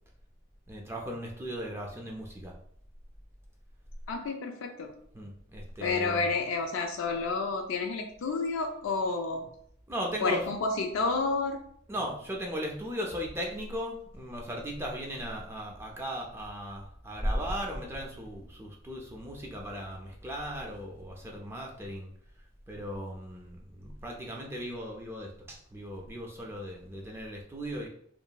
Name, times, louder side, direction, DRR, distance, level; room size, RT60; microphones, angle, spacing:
voice 1, 0.7-2.5 5.1-6.2 9.9-10.5 11.9-22.1 22.7-27.9, equal, 15° right, -1 dB, 0.4 m, -37 dB
voice 2, 4.1-4.9 5.8-9.5 10.2-11.6, left 3 dB, 80° left, 3 dB, 0.4 m, -30 dB
2.8 x 2.4 x 2.2 m, 0.65 s
head